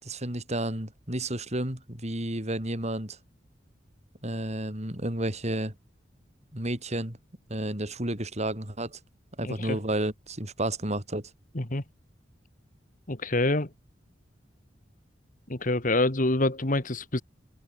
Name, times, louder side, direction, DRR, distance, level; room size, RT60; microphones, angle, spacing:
voice 1, 0.0-3.2 4.2-5.7 6.5-7.2 7.5-9.0 9.4-11.3, right 1 dB, 35° right, 5.6 m, -31 dB
voice 2, 9.4-9.8 11.5-11.8 13.1-13.7 15.5-17.2, left 2 dB, 45° left, 2.1 m, -26 dB
head